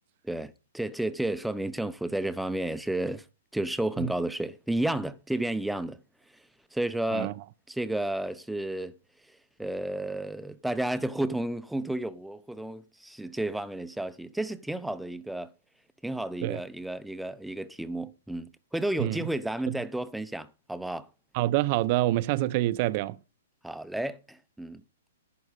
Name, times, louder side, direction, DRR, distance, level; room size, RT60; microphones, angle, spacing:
voice 1, 0.2-3.2 3.5-6.0 6.7-7.4 7.7-9.0 9.6-15.5 16.0-21.1 23.6-24.8, right 1 dB, ahead, 0.8 m, -32 dB
voice 2, 21.3-23.2, right 16 dB, 45° right, 0.6 m, -26 dB
11.0 x 9.5 x 5.1 m
hypercardioid pair, 135°, 0 cm